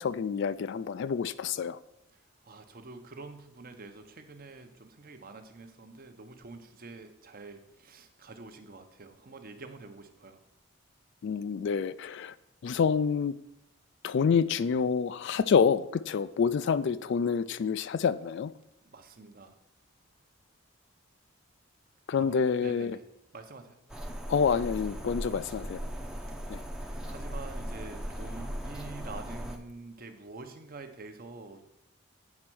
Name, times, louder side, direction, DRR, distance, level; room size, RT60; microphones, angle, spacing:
voice 1, 0.0-1.8 11.2-12.3 12.6-13.3 14.0-18.5 22.1-23.0 24.3-25.8 26.5-26.6, left 6 dB, 55° left, 15 dB, 0.3 m, -27 dB
voice 2, 2.1-10.4 18.9-19.6 22.2-23.0 23.3-23.8 26.3-26.5 27.1-31.6, right 3 dB, 45° right, 7 dB, 0.8 m, -47 dB
sound 1, 23.9-29.6, equal, 5° right, 0.6 m, -38 dB
8.6 x 4.4 x 6.1 m, 0.81 s
head